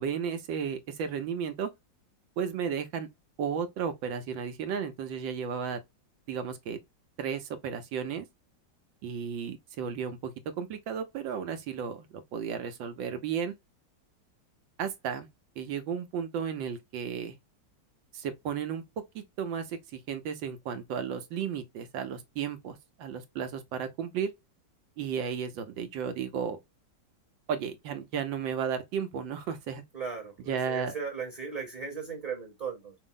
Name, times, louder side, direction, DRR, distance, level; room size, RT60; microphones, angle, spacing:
voice 1, 0.0-1.7 2.4-3.1 3.4-5.8 6.3-6.8 7.2-8.3 9.0-10.3 10.6-13.5 14.8-15.3 15.6-17.4 18.1-18.8 19.1-24.3 25.0-26.6 27.5-29.8 30.5-30.9, right 7 dB, 80° right, 1.4 m, -34 dB
voice 2, 29.9-32.9, right 6 dB, 25° right, 1.0 m, -37 dB
5.4 x 2.0 x 3.7 m
omnidirectional pair, 2.1 m